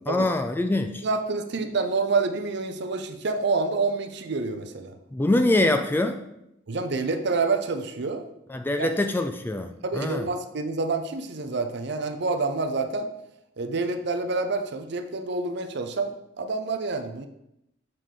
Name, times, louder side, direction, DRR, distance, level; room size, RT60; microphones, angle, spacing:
voice 1, 0.1-1.0 5.1-6.2 8.5-10.3, left 1 dB, 10° left, 7 dB, 0.3 m, -24 dB
voice 2, 1.0-4.9 6.7-8.2 8.8-8.9 9.8-13.1 13.6-17.3, right 3 dB, 55° right, 8 dB, 0.6 m, -27 dB
7.5 x 3.7 x 4.9 m, 0.83 s
head